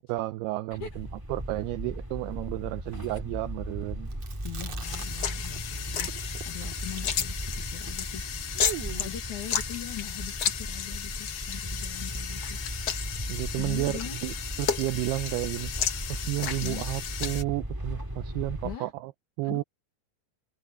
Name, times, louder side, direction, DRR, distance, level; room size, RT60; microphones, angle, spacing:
voice 1, 0.1-4.1 13.3-15.7 16.1-19.1 19.4-19.6, right 19 dB, 80° right, 2.4 m, -32 dB
sound 1, 0.7-18.8, right 1 dB, 5° right, 2.7 m, -37 dB
Chewing mastication, 4.1-5.6 5.9-9.3, right 8 dB, 40° right, 3.7 m, -41 dB
voice 2, 4.4-8.3 9.0-12.6 13.6-14.2 16.5-16.8 18.6-18.9 19.4-19.6, left 12 dB, 55° left, 2.9 m, -41 dB
sound 2, 4.8-17.4, left 8 dB, 80° left, 1.3 m, -33 dB
omnidirectional pair, 5.0 m